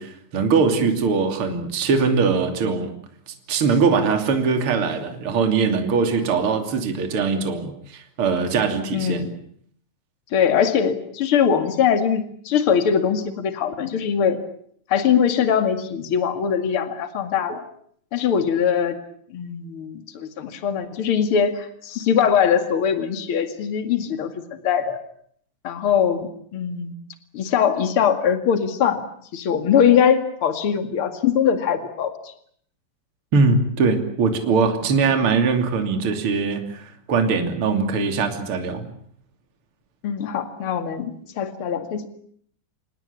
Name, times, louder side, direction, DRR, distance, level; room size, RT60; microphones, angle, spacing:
voice 1, 0.0-2.9 3.5-9.2 33.3-38.9, right 4 dB, 35° right, 6 dB, 3.0 m, -21 dB
voice 2, 8.9-9.3 10.3-14.4 14.9-17.6 18.1-19.0 19.3-24.3 24.6-25.0 25.6-26.9 27.3-29.0 29.3-32.3 40.0-42.1, left 8 dB, 45° left, 8 dB, 2.0 m, -21 dB
27.5 x 19.0 x 8.6 m, 0.63 s
omnidirectional pair, 5.3 m